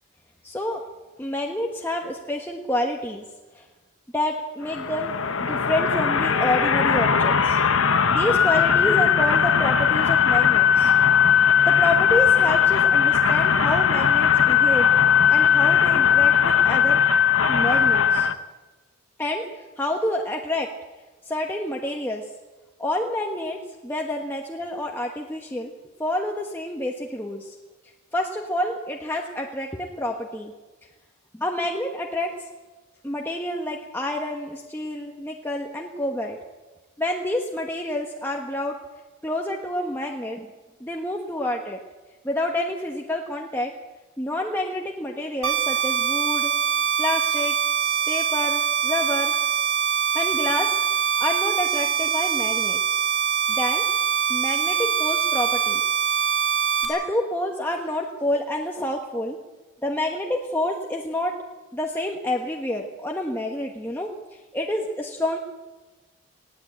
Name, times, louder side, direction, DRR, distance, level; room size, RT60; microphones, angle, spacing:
voice 1, 0.4-0.8 1.2-3.2 3.5-3.7 4.1-7.6 8.1-10.9 11.6-14.9 15.3-17.0 17.5-18.3 19.2-20.7 21.2-22.2 22.8-25.7 26.0-27.6 28.1-30.5 31.3-32.3 33.0-36.4 37.0-38.8 39.2-40.5 40.8-41.8 42.2-43.7 44.2-46.5 47.0-47.5 48.1-49.3 50.1-53.0 53.5-53.9 54.3-55.8 56.8-59.4 59.8-61.4 61.7-65.4, left 1 dB, 10° left, 0 dB, 1.3 m, -28 dB
sound 1, 4.7-18.3, left 7 dB, 70° left, 1.0 m, -19 dB
sound 2, 45.4-56.8, right 8 dB, 85° right, 4.6 m, -23 dB
19.5 x 17.0 x 8.7 m, 1.2 s
head